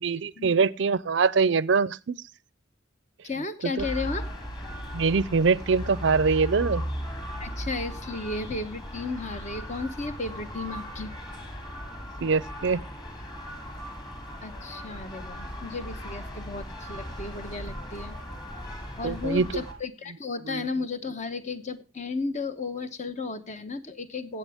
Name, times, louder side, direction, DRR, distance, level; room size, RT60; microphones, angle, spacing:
voice 1, 0.0-2.2 3.8-3.9 4.9-6.8 12.2-12.8 19.0-19.6 20.5-20.6, right 5 dB, 65° right, 0.5 m, -23 dB
voice 2, 3.2-4.3 7.4-11.1 14.4-18.2 19.0-24.4, left 3 dB, 35° left, 1.0 m, -34 dB
sound 1, 3.8-19.7, equal, 20° left, 2.8 m, -37 dB
15.5 x 8.0 x 3.5 m
head